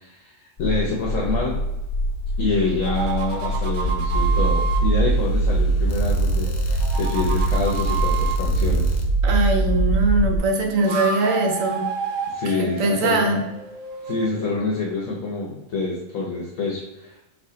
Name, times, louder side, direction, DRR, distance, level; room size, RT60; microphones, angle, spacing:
voice 1, 0.0-1.6 2.4-8.9 12.3-13.4 14.0-17.2, left 3 dB, 75° left, -3 dB, 1.2 m, -27 dB
sound 1, 0.6-10.4, right 2 dB, 50° left, 0.5 m, -22 dB
sound 2, 2.6-4.8 6.3-8.4 10.6-14.6, right 6 dB, 50° right, 0.6 m, -30 dB
voice 2, 9.2-11.8 12.6-13.4, right 2 dB, 75° right, 3 dB, 1.1 m, -21 dB
4.6 x 2.5 x 3.7 m, 0.97 s
omnidirectional pair, 1.4 m